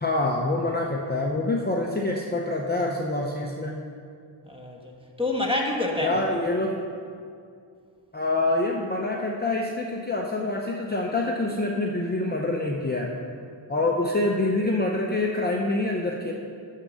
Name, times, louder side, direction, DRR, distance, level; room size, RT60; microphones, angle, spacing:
voice 1, 0.0-3.8 6.0-6.8 8.1-13.1 13.7-16.3, left 2 dB, 20° left, -1 dB, 0.6 m, -26 dB
voice 2, 4.4-6.4, left 2 dB, 10° right, 0 dB, 1.2 m, -28 dB
8.1 x 6.6 x 6.3 m, 2.3 s
wide cardioid pair, 125°, 47 cm